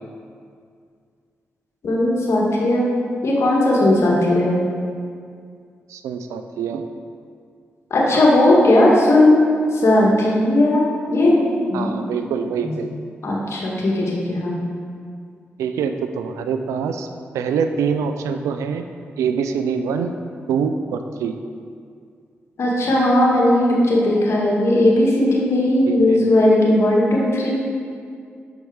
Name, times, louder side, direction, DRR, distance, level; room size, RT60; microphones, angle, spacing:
voice 1, 1.8-2.9 3.2-4.6 7.9-11.4 11.7-12.3 12.6-12.7 13.2-14.6 22.6-27.5, left 1 dB, 65° left, -3 dB, 1.6 m, -17 dB
voice 2, 5.9-6.8 11.7-12.9 15.6-17.1 17.3-18.8 19.2-20.1 20.5-21.3 25.9-26.2, right 6 dB, 90° right, 7 dB, 0.4 m, -24 dB
7.0 x 4.5 x 4.8 m, 2.2 s
supercardioid pair, 45°, 5 cm